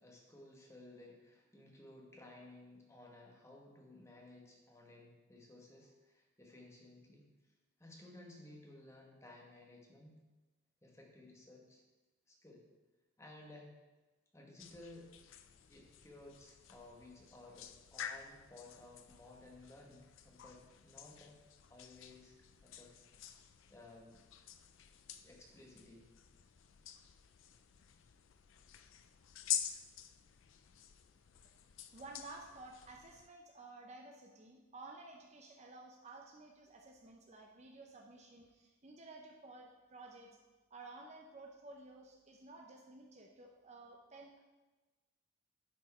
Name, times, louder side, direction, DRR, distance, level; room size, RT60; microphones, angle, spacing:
voice 1, 0.0-7.5 7.8-10.2 10.8-11.8 12.3-12.6 13.2-13.8 14.3-15.1 15.7-21.3 21.7-22.4 22.6-23.1 23.7-24.2 25.2-26.1, left 2 dB, 15° left, -1 dB, 1.2 m, -57 dB
sound 1, 14.6-33.3, left 10 dB, 65° left, 0.4 m, -48 dB
voice 2, 31.9-40.3 40.7-44.4, right 2 dB, 30° right, 1 dB, 0.6 m, -54 dB
9.9 x 4.6 x 4.2 m, 1.2 s
head